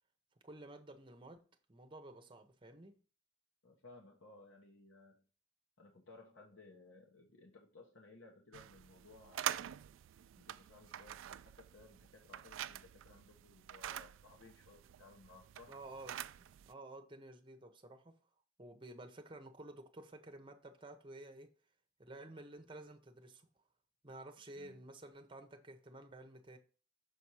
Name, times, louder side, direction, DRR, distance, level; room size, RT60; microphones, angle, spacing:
voice 1, 0.4-1.4 1.7-3.0 15.7-18.1 18.6-21.5 22.0-23.5 24.0-26.6, right 2 dB, 25° right, 0.9 m, -52 dB
voice 2, 3.6-5.2 5.8-9.5 10.3-15.7 24.6-24.8, left 3 dB, 80° left, 1.2 m, -59 dB
sound 1, 8.5-16.7, right 11 dB, 75° right, 0.3 m, -46 dB
6.5 x 4.3 x 4.7 m
head